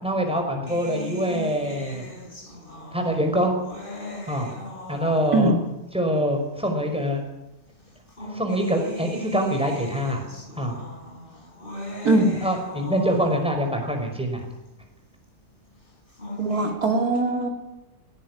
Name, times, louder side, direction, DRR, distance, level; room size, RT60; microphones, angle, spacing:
voice 1, 0.0-2.0 2.9-3.6 4.3-4.5 4.9-5.5 5.9-7.2 8.3-10.2 10.6-10.8 12.4-14.4, equal, 5° right, 3 dB, 5.3 m, -24 dB
sound 1, 0.7-5.7 6.7-6.8 7.9-13.8 15.9-16.7, equal, 30° left, 5.2 m, -38 dB
voice 2, 12.0-12.4 16.4-17.5, right 2 dB, 65° right, 3 dB, 3.1 m, -21 dB
18.5 x 18.5 x 9.8 m, 0.99 s
omnidirectional pair, 1.7 m